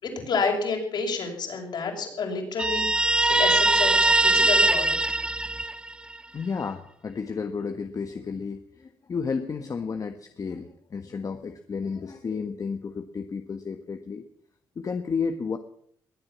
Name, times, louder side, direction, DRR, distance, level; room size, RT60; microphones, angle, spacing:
voice 1, 0.0-4.9, left 4 dB, 65° left, 2 dB, 6.2 m, -29 dB
Guitar, 2.6-6.2, right 2 dB, 10° right, 0.5 m, -21 dB
voice 2, 6.3-14.2 14.7-15.6, left 5 dB, 45° left, 7 dB, 1.4 m, -32 dB
21.5 x 8.9 x 7.3 m, 0.67 s
cardioid pair, 75°, 8 cm